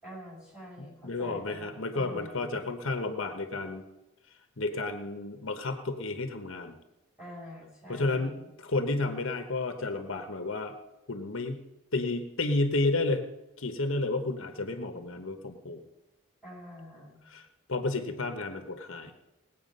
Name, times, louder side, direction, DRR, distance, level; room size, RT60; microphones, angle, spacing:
voice 1, 0.0-2.5 7.2-8.5 16.4-17.2, left 1 dB, 5° right, -5 dB, 5.4 m, -46 dB
voice 2, 0.8-3.8 4.6-6.8 7.9-10.7 11.1-11.6 11.9-13.2 13.6-15.8 17.3-19.1, left 2 dB, 75° left, 6 dB, 1.1 m, -31 dB
19.5 x 8.4 x 5.4 m, 0.99 s
head